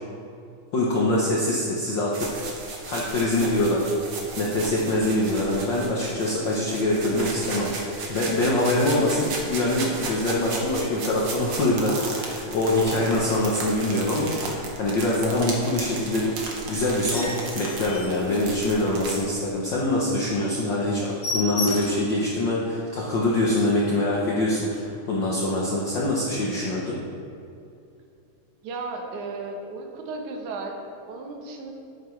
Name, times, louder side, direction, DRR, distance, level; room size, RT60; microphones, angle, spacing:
voice 1, 0.7-2.3 2.6-3.9 4.4-7.7 8.1-27.0, left 1 dB, 85° left, -5 dB, 1.0 m, -24 dB
sound 1, 2.1-19.2, right 3 dB, 55° right, 1.7 m, -35 dB
sound 2, 16.9-19.1 19.5-19.7 20.0-20.1 20.4-20.6 20.8-22.2 22.6-22.7 23.1-23.2 23.4-23.9 24.7-24.8, left 3 dB, 45° left, 1.6 m, -34 dB
voice 2, 28.6-31.7, right 3 dB, 75° right, 2 dB, 2.4 m, -35 dB
11.0 x 9.3 x 3.2 m, 2.5 s
omnidirectional pair, 3.6 m